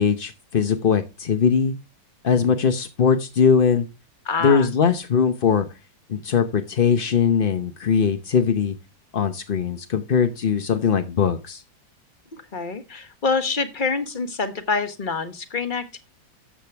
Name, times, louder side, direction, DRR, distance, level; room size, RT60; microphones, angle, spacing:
voice 1, 0.0-1.7 2.2-3.9 4.4-5.7 6.1-8.7 9.1-11.6, left 6 dB, 50° left, 8 dB, 0.6 m, -20 dB
voice 2, 4.3-4.7 12.5-16.0, left 4 dB, 30° left, 9 dB, 1.1 m, -26 dB
13.0 x 8.2 x 3.4 m, 0.27 s
omnidirectional pair, 2.0 m